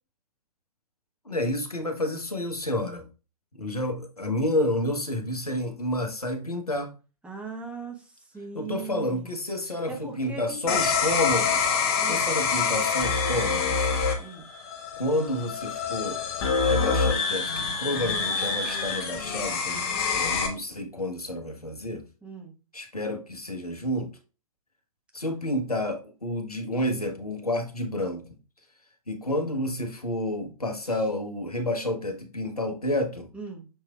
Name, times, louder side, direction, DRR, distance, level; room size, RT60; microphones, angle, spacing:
voice 1, 1.2-3.1 3.5-6.9 8.5-11.7 12.0-14.0 14.9-16.2 16.6-19.9 20.1-22.0 22.7-24.1 25.1-28.3 29.1-33.3, left 1 dB, 85° left, 5 dB, 1.0 m, -30 dB
voice 2, 7.2-9.3 9.9-11.0 12.0-12.3 14.2-14.5 22.2-22.5 30.9-31.0 33.3-33.7, right 4 dB, 5° right, 1 dB, 0.9 m, -39 dB
sound 1, 10.7-20.5, left 5 dB, 40° left, 1.1 m, -26 dB
6.5 x 3.2 x 2.3 m, 0.34 s
figure-of-eight pair, 110°, 19 cm